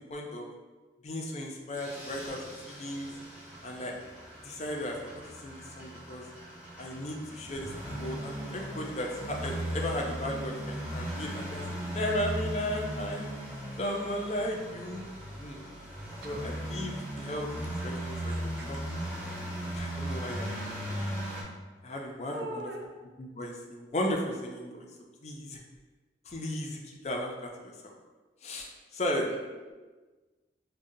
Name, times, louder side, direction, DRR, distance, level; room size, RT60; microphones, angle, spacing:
voice 1, 0.1-0.5 1.0-3.1 3.6-4.0 4.4-5.1 5.4-6.2 6.8-13.3 13.8-15.1 15.4-15.6 16.2-18.8 19.7-20.8 21.8-22.6 23.2-24.9 25.2-25.6 26.3-27.9 28.4-29.3, left 1 dB, 40° left, 0 dB, 0.5 m, -35 dB
sound 1, 1.7-21.4, right 1 dB, 10° right, 0.8 m, -38 dB
voice 2, 18.1-18.8 21.9-22.0 22.3-22.9 29.3-29.7, right 1 dB, 65° right, 1 dB, 0.5 m, -42 dB
5.0 x 2.2 x 2.6 m, 1.3 s
head